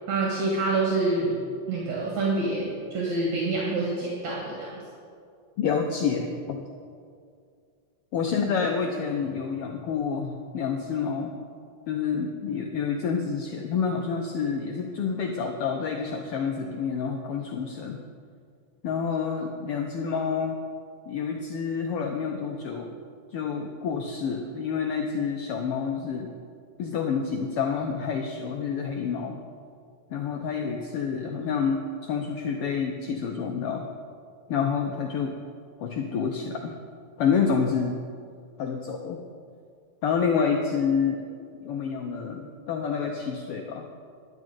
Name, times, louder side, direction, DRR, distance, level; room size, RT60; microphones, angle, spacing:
voice 1, 0.1-1.4 1.7-4.8, right 3 dB, 70° right, -4 dB, 3.2 m, -27 dB
voice 2, 5.6-6.6 8.1-11.3 11.9-18.0 18.8-20.6 21.1-22.9 23.3-26.3 26.8-29.4 30.1-33.9 34.5-35.3 35.8-36.7 37.2-38.0 38.6-39.2 40.0-41.2 41.6-43.9, left 6 dB, 75° left, 2 dB, 1.4 m, -28 dB
11.5 x 6.4 x 8.9 m, 2.3 s
omnidirectional pair, 3.4 m